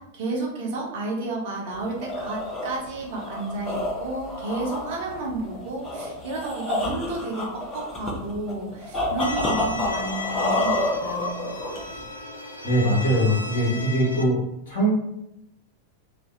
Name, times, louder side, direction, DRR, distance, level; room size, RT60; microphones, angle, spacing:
voice 1, 0.0-11.5, right 2 dB, 50° right, -2 dB, 0.8 m, -31 dB
sound 1, 1.7-12.1, left 1 dB, 25° left, 0.7 m, -29 dB
Bowed string instrument, 9.2-14.2, left 2 dB, 80° left, 0.4 m, -35 dB
voice 2, 12.6-14.9, right 1 dB, 55° left, -6 dB, 1.1 m, -22 dB
2.6 x 2.3 x 2.5 m, 0.81 s
figure-of-eight pair, 90°, 0 cm